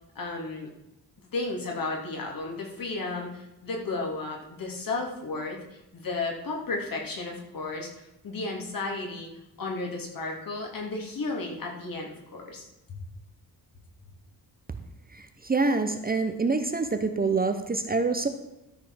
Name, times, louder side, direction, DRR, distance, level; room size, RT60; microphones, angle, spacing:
voice 1, 0.1-0.7 1.3-7.9 8.2-9.3 9.6-13.0, left 3 dB, 60° left, 0 dB, 3.0 m, -33 dB
voice 2, 15.1-18.3, right 3 dB, 25° right, 7 dB, 0.7 m, -26 dB
13.0 x 5.6 x 6.3 m, 0.94 s
wide cardioid pair, 160°, 39 cm